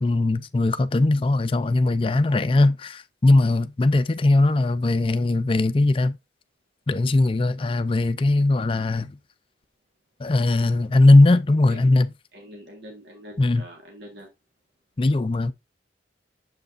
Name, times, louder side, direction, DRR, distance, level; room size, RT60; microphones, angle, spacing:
voice 1, 0.0-6.2 6.9-9.2 10.2-12.1 13.4-13.6 15.0-15.5, left 2 dB, 30° left, 0.4 m, -19 dB
voice 2, 12.3-14.3, equal, 75° right, 1.5 m, -44 dB
7.3 x 5.4 x 2.5 m
head